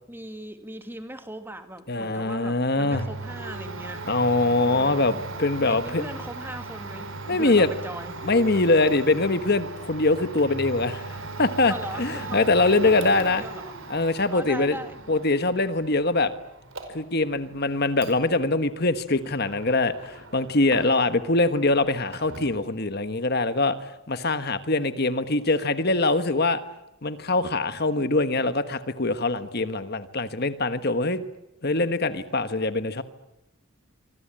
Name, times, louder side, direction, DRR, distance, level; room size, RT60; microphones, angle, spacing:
voice 1, 0.1-4.0 4.7-5.2 5.6-8.1 11.6-13.8 14.3-15.0, right 1 dB, 10° right, 8 dB, 2.2 m, -39 dB
voice 2, 1.9-3.1 4.1-5.1 5.4-6.0 7.3-7.7 8.2-13.4 13.9-14.8 15.1-16.3 16.9-26.6 27.0-31.2 31.6-33.0, left 2 dB, 45° left, 11 dB, 1.4 m, -23 dB
Domestic sounds home sounds, 2.9-21.2 21.5-22.6, right 3 dB, 65° right, 5.2 m, -38 dB
26.5 x 25.0 x 8.9 m, 0.93 s
head